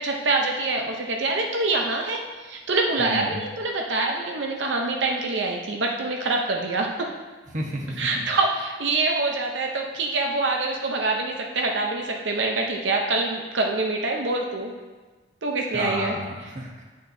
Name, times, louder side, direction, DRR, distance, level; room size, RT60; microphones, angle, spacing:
voice 1, 0.0-7.1 8.0-14.7 15.4-16.2, right 3 dB, 75° right, 1 dB, 0.7 m, -25 dB
voice 2, 3.0-3.4 7.5-8.0 15.7-16.8, equal, 40° right, -1 dB, 1.1 m, -31 dB
8.6 x 6.6 x 2.7 m, 1.3 s
head